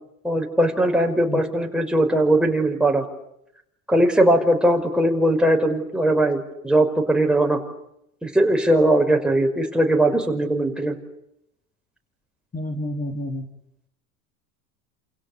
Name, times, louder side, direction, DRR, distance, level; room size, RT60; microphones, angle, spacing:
voice 1, 0.2-3.0 3.9-7.6 8.2-10.9, right 1 dB, ahead, 2 dB, 5.2 m, -20 dB
voice 2, 12.5-13.4, left 1 dB, 20° left, 5 dB, 3.6 m, -29 dB
30.0 x 28.5 x 6.8 m, 0.80 s
hypercardioid pair, 85°, 43 cm